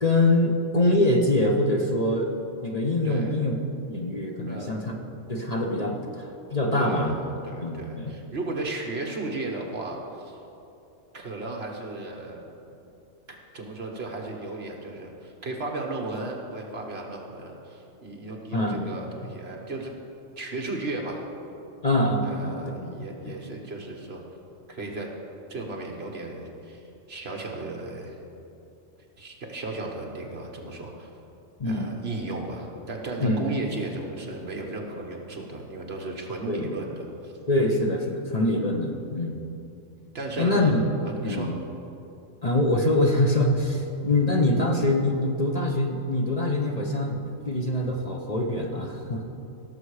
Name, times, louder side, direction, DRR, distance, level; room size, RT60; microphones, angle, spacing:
voice 1, 0.0-2.3 2.6-3.5 3.9-4.9 5.3-7.1 7.6-8.1 18.5-18.9 21.8-23.4 31.6-31.9 33.2-33.5 36.5-36.7 37.5-39.4 40.4-40.8 41.2-41.5 42.4-49.2, left 1 dB, 35° left, 1 dB, 0.9 m, -24 dB
voice 2, 3.0-3.4 4.5-5.3 6.8-10.4 11.1-12.5 13.3-19.9 20.4-21.2 22.2-24.2 24.7-25.1 25.5-26.8 27.1-28.1 29.2-31.1 31.6-37.3 40.1-40.7 41.0-41.5, right 2 dB, 50° right, 0 dB, 1.6 m, -35 dB
17.5 x 7.0 x 4.9 m, 2.7 s
omnidirectional pair, 1.4 m